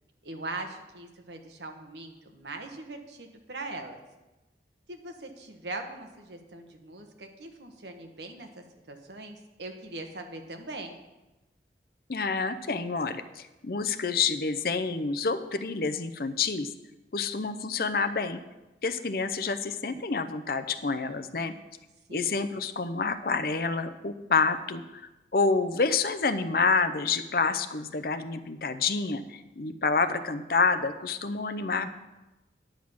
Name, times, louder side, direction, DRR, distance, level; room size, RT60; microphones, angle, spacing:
voice 1, 0.2-4.0 4.9-11.0 22.1-22.5, right 2 dB, 75° right, 5 dB, 1.3 m, -41 dB
voice 2, 12.1-16.7 17.1-18.4 18.8-21.5 22.1-25.0 25.3-31.9, left 4 dB, 55° left, 10 dB, 0.6 m, -28 dB
10.0 x 7.3 x 6.1 m, 1.0 s
head